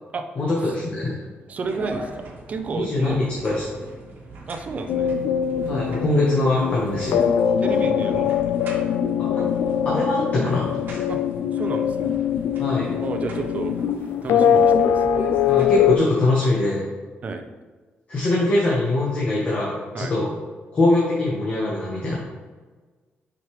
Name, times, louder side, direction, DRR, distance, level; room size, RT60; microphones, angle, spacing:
voice 1, 0.4-1.2 2.7-3.7 5.6-7.2 9.2-9.5 9.8-11.0 12.6-12.9 15.5-16.8 18.1-20.3 20.7-22.2, left 2 dB, 35° left, -5 dB, 1.2 m, -22 dB
voice 2, 1.5-3.2 4.5-5.1 7.6-8.6 11.1-11.2 11.5-12.1 13.0-13.7 14.2-15.0 17.2-17.4 19.9-20.1, right 4 dB, 35° right, 6 dB, 0.6 m, -31 dB
sound 1, 1.6-15.6, right 2 dB, 55° right, 1.3 m, -41 dB
sound 2, 4.9-16.0, left 8 dB, 85° left, 0.3 m, -22 dB
6.2 x 5.2 x 3.2 m, 1.4 s
wide cardioid pair, 160°, 4 cm